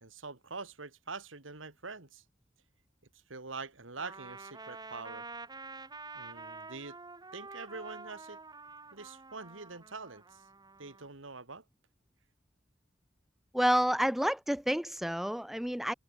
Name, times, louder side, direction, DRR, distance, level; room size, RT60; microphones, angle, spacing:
voice 1, 0.0-2.2 3.3-5.2 6.1-7.0 7.3-8.4 8.9-10.4 10.8-11.6, right 4 dB, 75° right, 2.7 m, -44 dB
Trumpet, 4.0-11.1, right 3 dB, 20° right, 2.0 m, -48 dB
voice 2, 13.5-15.9, equal, ahead, 0.5 m, -29 dB
head